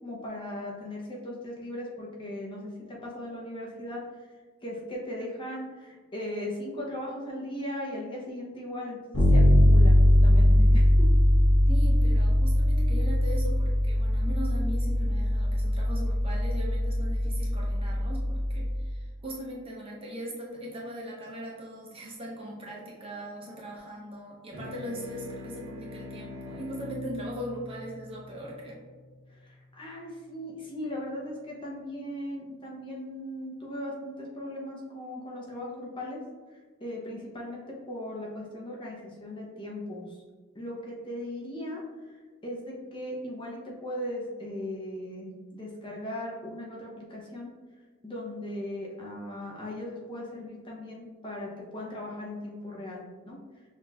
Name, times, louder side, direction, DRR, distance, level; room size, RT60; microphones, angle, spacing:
voice 1, 0.0-4.0 4.6-11.1 29.3-36.2 36.8-40.2 40.5-45.3 45.5-47.5 48.0-53.4, left 1 dB, 20° left, -3 dB, 0.6 m, -38 dB
Bass guitar, 9.1-18.9, left 1 dB, 50° left, 1.2 m, -21 dB
voice 2, 11.7-28.8, equal, 25° right, -3 dB, 0.6 m, -39 dB
sound 1, 24.5-29.4, left 2 dB, 55° right, 1.1 m, -43 dB
5.8 x 2.9 x 2.3 m, 1.5 s
head